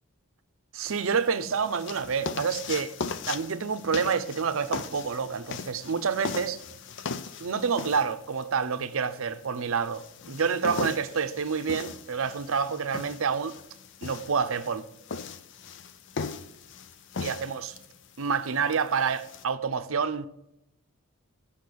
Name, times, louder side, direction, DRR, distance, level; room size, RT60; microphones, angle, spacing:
voice 1, 0.7-2.9 3.3-6.6 7.4-13.6 14.0-14.8 17.2-17.7 18.2-20.3, right 6 dB, 70° right, 0.6 m, -28 dB
sound 1, 0.9-19.4, left 5 dB, 55° left, 0.5 m, -39 dB
8.5 x 5.7 x 6.2 m
head